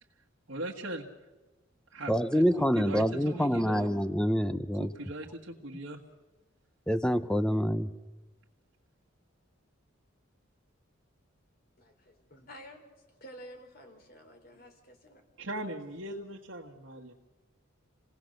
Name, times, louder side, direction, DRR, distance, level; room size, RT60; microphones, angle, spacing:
voice 1, 0.5-1.1 1.9-3.9 4.7-6.0 15.4-17.1, right 1 dB, 70° right, 1.7 m, -40 dB
voice 2, 2.1-4.9 6.9-7.9, equal, 5° left, 0.7 m, -26 dB
voice 3, 11.8-15.2, equal, 50° left, 3.5 m, -51 dB
28.0 x 18.0 x 6.6 m
head